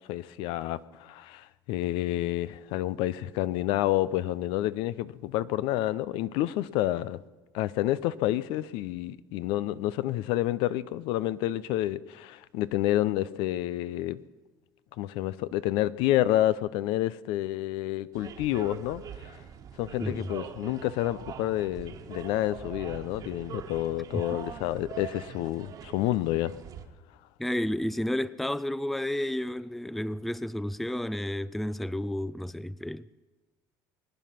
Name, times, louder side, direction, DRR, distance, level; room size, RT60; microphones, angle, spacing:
voice 1, 0.1-7.2 7.5-14.2 15.0-19.0 19.8-26.5, left 14 dB, 75° left, 0.6 m, -29 dB
sound 1, 18.1-26.8, right 7 dB, 45° right, 1.5 m, -43 dB
voice 2, 20.0-20.3 24.1-24.2 27.4-33.2, left 1 dB, ahead, 0.4 m, -31 dB
23.0 x 9.4 x 5.8 m
supercardioid pair, 110°, 9 cm